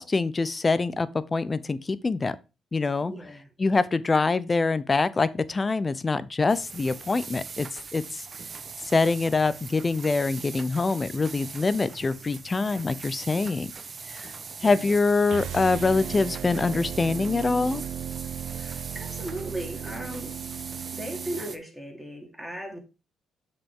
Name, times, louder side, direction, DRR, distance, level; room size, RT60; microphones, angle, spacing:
voice 1, 0.0-2.4 2.7-3.1 3.6-7.7 7.9-8.2 8.9-13.7 14.1-14.3 14.6-17.8, left 3 dB, 30° left, 0.7 m, -24 dB
voice 2, 3.0-3.5 14.5-14.9 18.5-20.4 20.9-22.8, right 1 dB, 5° right, 2.9 m, -37 dB
sound 1, 6.5-21.6, right 5 dB, 40° right, 1.0 m, -41 dB
sound 2, 15.3-21.4, right 9 dB, 70° right, 0.4 m, -36 dB
6.9 x 5.5 x 3.7 m
cardioid pair, 90°, 0 cm